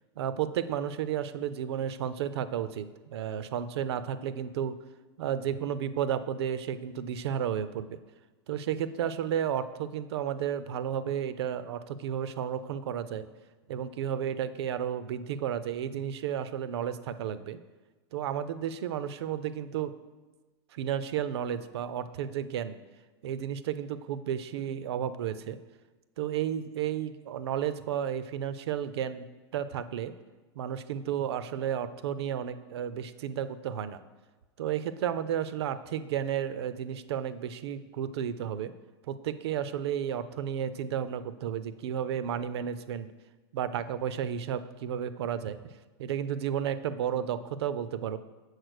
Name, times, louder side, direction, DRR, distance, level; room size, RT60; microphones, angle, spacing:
voice 1, 0.2-4.7 5.2-8.0 8.5-13.3 13.7-17.6 18.1-19.9 20.7-22.8 23.2-25.6 26.2-29.3 29.5-30.1 30.6-34.0 34.6-38.7 39.1-43.1 43.5-45.7 46.0-48.2, right 9 dB, 75° right, 13 dB, 0.5 m, -32 dB
6.5 x 4.2 x 6.4 m, 1.2 s
supercardioid pair, 155°, 14 cm